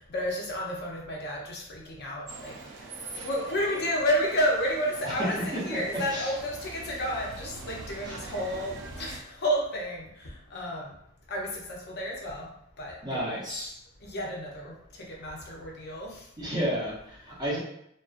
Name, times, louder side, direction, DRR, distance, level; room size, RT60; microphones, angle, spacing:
voice 1, 0.1-10.9 11.3-12.5 12.8-13.4 14.0-16.3, equal, 50° left, -2 dB, 0.5 m, -31 dB
sound 1, 2.3-9.2, right 3 dB, 60° right, 0.4 m, -43 dB
voice 2, 13.0-13.7 16.4-17.6, equal, 20° right, -6 dB, 0.7 m, -32 dB
2.4 x 2.2 x 2.4 m, 0.75 s
head